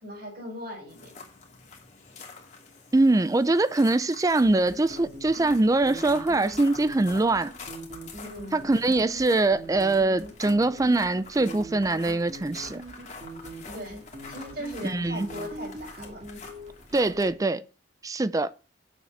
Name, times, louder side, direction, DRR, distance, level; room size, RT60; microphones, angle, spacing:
voice 1, 0.0-1.1 8.2-8.6 13.7-14.0 14.3-16.2, equal, 55° right, 4.8 m, -38 dB
sound 1, 0.9-17.3, left 4 dB, 40° left, 2.5 m, -47 dB
voice 2, 2.9-7.5 8.5-12.8 14.8-15.3 16.9-17.6 18.0-18.5, right 2 dB, 20° right, 0.4 m, -23 dB
sound 2, 4.4-17.4, right 1 dB, 35° right, 2.2 m, -43 dB
9.1 x 7.2 x 5.6 m
head